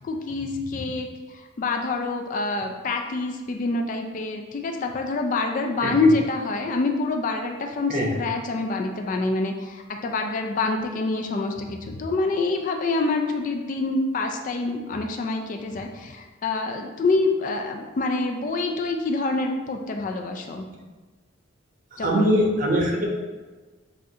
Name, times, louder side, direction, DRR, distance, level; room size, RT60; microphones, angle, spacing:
voice 1, 0.0-20.7 22.0-22.3, left 3 dB, 40° left, 3 dB, 0.3 m, -26 dB
voice 2, 5.8-6.1 7.9-8.1 21.9-23.1, equal, 40° right, 0 dB, 0.8 m, -22 dB
6.2 x 2.5 x 2.8 m, 1.3 s
head